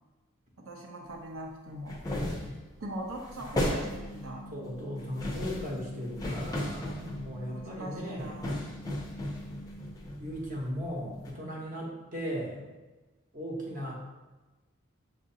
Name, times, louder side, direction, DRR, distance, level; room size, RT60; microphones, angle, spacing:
voice 1, 0.6-2.0 2.8-4.5 6.9-8.7, right 1 dB, 75° right, 1 dB, 0.6 m, -42 dB
sound 1, 1.9-2.7 3.0-4.3 5.0-7.7 8.2-10.9 11.2-11.3, left 1 dB, 15° left, 0.5 m, -35 dB
sound 2, 3.8-10.0, equal, 80° left, 0.5 m, -47 dB
voice 2, 4.5-8.4 10.2-12.7 13.3-13.9, equal, 40° right, -2 dB, 0.9 m, -37 dB
6.5 x 2.5 x 2.7 m, 1.2 s
head